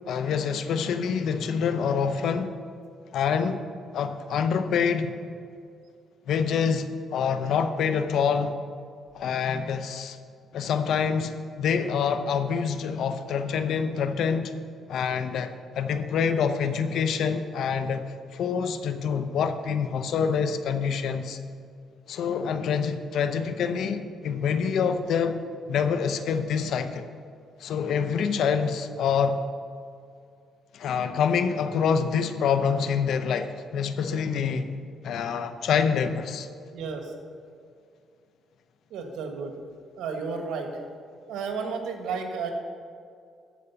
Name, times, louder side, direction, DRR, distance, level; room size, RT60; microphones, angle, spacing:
voice 1, 0.1-2.5 3.1-3.6 3.9-5.2 6.3-8.6 9.1-10.2 10.5-14.5 14.9-18.0 18.3-21.4 22.1-25.4 25.7-27.1 27.6-29.4 30.7-34.7 35.0-36.5, left 6 dB, 75° left, 9 dB, 0.7 m, -26 dB
voice 2, 36.7-37.1 38.9-39.5 40.0-40.7 41.3-42.5, right 5 dB, 85° right, 3 dB, 1.6 m, -32 dB
13.5 x 5.0 x 7.0 m, 2.3 s
cardioid pair, 90°, 0 cm